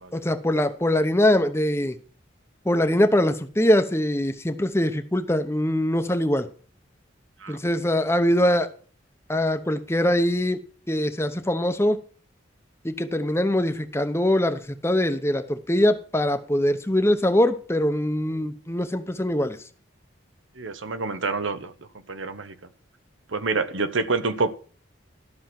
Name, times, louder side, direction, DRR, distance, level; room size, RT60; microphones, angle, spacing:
voice 1, 0.1-2.0 2.6-6.5 7.5-8.7 9.3-10.6 10.9-12.0 12.8-19.6, left 1 dB, 15° left, 0.9 m, -22 dB
voice 2, 20.6-21.7 22.1-22.5 23.3-24.5, right 3 dB, 90° right, 1.1 m, -27 dB
13.0 x 6.3 x 5.9 m
head